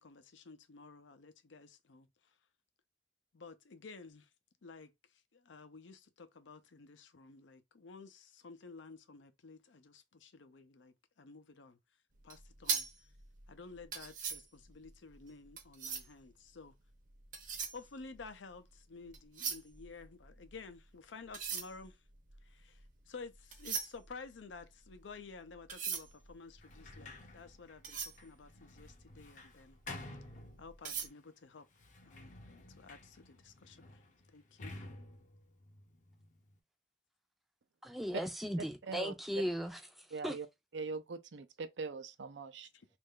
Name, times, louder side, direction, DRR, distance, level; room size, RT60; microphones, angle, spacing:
voice 1, 0.0-2.4 3.3-4.3 4.6-11.8 12.2-12.9 13.5-16.8 17.7-22.0 22.4-29.8 30.6-31.7 32.0-32.3 32.7-34.0 34.3-34.7 42.7-42.9, left 4 dB, 85° left, 0.6 m, -53 dB
sound 1, 12.2-16.3 17.1-18.7 19.0-20.8 21.2-29.2 29.7-29.9 30.3-31.1, right 6 dB, 45° right, 0.8 m, -41 dB
Sliding door, 26.6-31.1 31.7-36.6, left 2 dB, 40° left, 0.6 m, -52 dB
voice 2, 37.8-39.8 40.2-40.4, equal, ahead, 0.4 m, -37 dB
voice 3, 40.1-40.5 40.7-42.7, right 4 dB, 80° right, 0.5 m, -42 dB
3.2 x 2.5 x 3.7 m
head